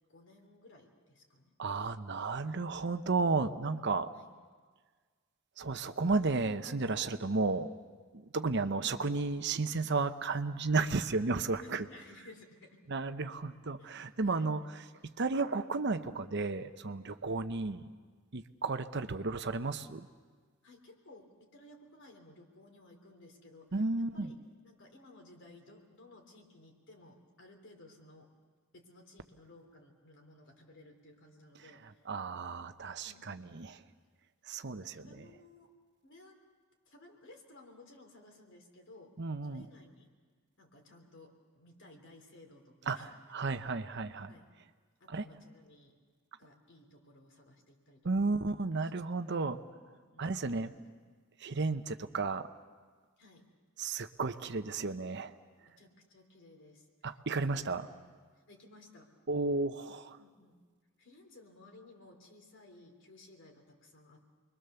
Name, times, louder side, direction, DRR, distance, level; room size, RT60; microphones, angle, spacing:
voice 1, 0.1-1.5 4.1-4.3 11.6-12.8 13.8-14.5 17.3-17.4 20.6-23.8 24.1-24.4 24.6-28.3 28.7-32.0 33.0-33.5 34.6-35.7 36.0-36.4 36.9-39.2 39.4-40.1 40.6-43.1 44.3-44.5 45.0-46.0 46.4-48.3 49.0-49.5 49.9-50.3 53.2-53.4 55.6-58.0 58.4-59.1 60.2-60.6 61.0-64.2, left 2 dB, 60° left, 3 dB, 3.5 m, -57 dB
voice 2, 1.6-4.1 5.6-7.7 8.1-11.9 12.9-14.6 15.0-17.9 18.3-20.1 23.7-24.3 32.1-33.8 34.5-35.2 39.2-39.7 42.9-43.0 43.3-44.3 45.1-45.3 48.0-49.6 50.2-50.7 51.4-52.5 53.8-55.3 57.0-57.9 59.3-60.2, right 3 dB, 55° right, 10 dB, 0.9 m, -33 dB
29.0 x 22.5 x 6.9 m, 1.5 s
head